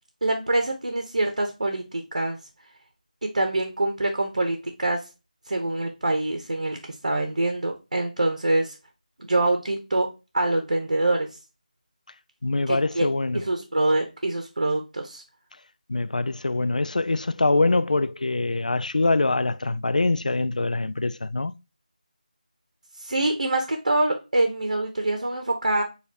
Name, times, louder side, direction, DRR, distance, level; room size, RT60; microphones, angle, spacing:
voice 1, 0.2-2.4 3.2-5.0 5.5-6.8 7.0-8.7 9.2-10.1 10.3-11.3 12.7-13.1 13.3-15.2 23.0-25.8, right 2 dB, 60° right, 0.9 m, -25 dB
voice 2, 12.4-13.4 15.9-21.5, left 2 dB, 60° left, 0.3 m, -24 dB
6.7 x 2.6 x 2.5 m
figure-of-eight pair, 165°, 5 cm